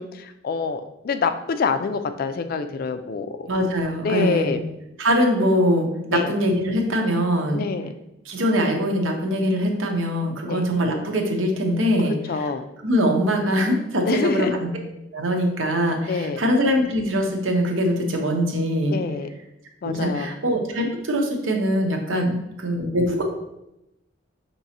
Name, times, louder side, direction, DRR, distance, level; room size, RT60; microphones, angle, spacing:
voice 1, 0.0-3.5 4.0-4.6 6.1-6.3 7.5-7.9 10.5-10.6 12.3-12.7 14.1-14.6 16.1-16.4 18.9-19.3 19.8-20.3 22.1-22.3, left 4 dB, 50° left, 9 dB, 0.3 m, -26 dB
voice 2, 3.5-4.5 5.0-7.6 8.3-12.1 12.8-14.7 15.1-19.0 19.8-23.2, equal, 85° right, 2 dB, 0.8 m, -22 dB
5.9 x 3.0 x 2.8 m, 0.89 s
head